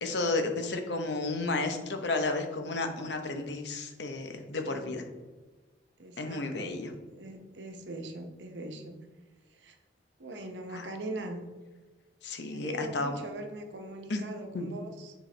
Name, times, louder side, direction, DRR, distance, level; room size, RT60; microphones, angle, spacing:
voice 1, 0.0-5.0 6.2-6.9 10.7-10.9 12.2-13.2 14.1-14.2 14.5-14.7, left 2 dB, 75° left, 5 dB, 0.9 m, -32 dB
voice 2, 6.0-9.0 9.5-9.8 10.2-11.5 12.5-15.1, right 1 dB, 85° right, 5 dB, 0.9 m, -41 dB
7.6 x 4.6 x 3.3 m, 1.3 s
head